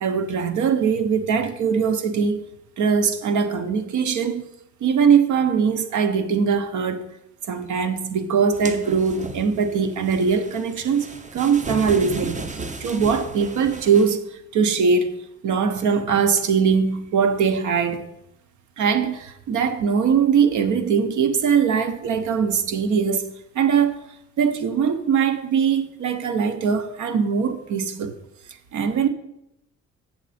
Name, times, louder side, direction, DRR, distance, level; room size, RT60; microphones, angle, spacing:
voice 1, 0.0-2.4 2.8-4.4 4.8-7.1 7.5-12.4 12.8-14.3 14.5-15.2 15.4-18.0 18.8-24.1 24.4-28.1 28.7-29.1, right 6 dB, 75° right, 1.0 m, -21 dB
sound 1, 8.5-14.1, right 3 dB, 25° right, 0.8 m, -35 dB
7.6 x 7.4 x 4.2 m
cardioid pair, 90°, 30 cm